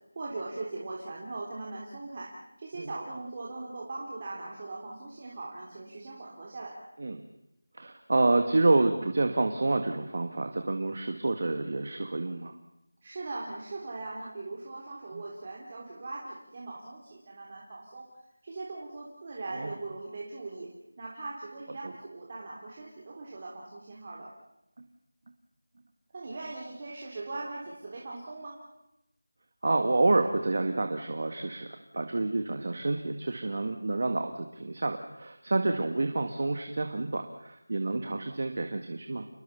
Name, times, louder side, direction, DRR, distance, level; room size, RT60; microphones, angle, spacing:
voice 1, 0.1-2.3 2.6-6.7 13.0-18.0 18.4-20.7 21.0-24.3 26.1-28.5, right 2 dB, 25° right, -3 dB, 3.4 m, -40 dB
voice 2, 7.7-12.5 15.1-15.2 19.5-19.8 29.6-39.3, right 2 dB, 45° right, 6 dB, 1.9 m, -28 dB
29.0 x 21.0 x 7.1 m, 0.84 s
figure-of-eight pair, 175°, 0 cm